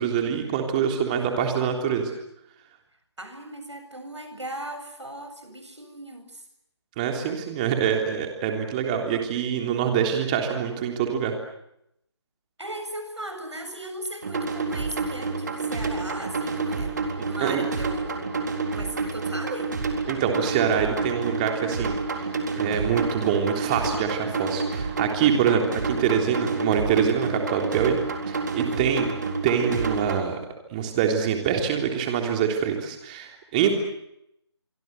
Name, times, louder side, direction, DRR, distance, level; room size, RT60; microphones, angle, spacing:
voice 1, 0.0-2.1 7.0-11.3 17.4-17.6 20.1-22.3 22.6-28.0 28.3-29.1 29.4-30.4 30.7-33.7, right 8 dB, 15° right, 4 dB, 3.5 m, -25 dB
voice 2, 3.2-6.4 12.6-18.2 18.7-19.8 28.6-29.0 33.6-33.7, right 1 dB, 80° right, 7 dB, 7.7 m, -37 dB
sound 1, 14.2-30.2, right 4 dB, 40° right, 3.9 m, -29 dB
25.5 x 25.5 x 8.1 m, 0.79 s
figure-of-eight pair, 155°, 15 cm